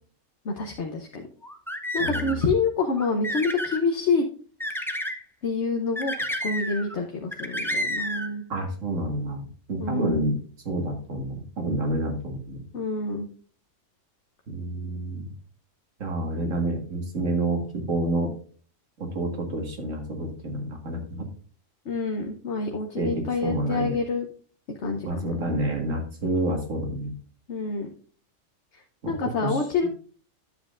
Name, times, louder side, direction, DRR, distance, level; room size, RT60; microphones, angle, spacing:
voice 1, 0.4-1.3 1.9-4.3 5.4-6.1 6.4-8.4 9.8-10.2 12.7-13.3 21.9-24.3 24.8-25.3 27.5-27.9 29.1-29.9, left 4 dB, 65° left, 3 dB, 1.2 m, -27 dB
sound 1, 1.4-2.5 3.0-3.8 4.6-5.2 6.0-7.0 7.3-8.3, equal, ahead, 0.6 m, -30 dB
voice 2, 2.0-2.4 8.5-9.4 9.7-10.4 10.7-12.6 14.5-15.2 16.0-18.3 19.0-21.3 23.0-24.0 25.0-27.1 29.0-29.9, right 1 dB, 85° right, 2 dB, 2.2 m, -29 dB
10.5 x 7.4 x 2.5 m, 0.42 s
omnidirectional pair, 1.3 m